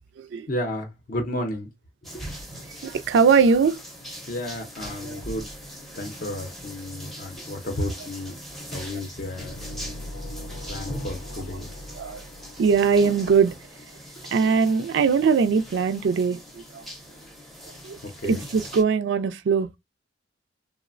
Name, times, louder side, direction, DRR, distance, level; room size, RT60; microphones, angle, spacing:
voice 1, 0.5-1.7 2.1-2.2 4.3-5.5 6.0-8.3 8.7-9.6 10.7-11.7 18.0-18.5, left 1 dB, 45° left, 0.5 m, -32 dB
sound 1, 2.0-18.8, equal, ahead, 0.5 m, -41 dB
voice 2, 2.8-3.8 5.0-5.2 12.0-12.2 12.6-13.5 14.3-16.4 16.7-16.8 17.8-18.0 18.2-19.7, right 5 dB, 65° right, 0.3 m, -21 dB
sound 2, 9.4-13.2, left 1 dB, 85° left, 0.7 m, -39 dB
3.1 x 2.0 x 2.4 m
head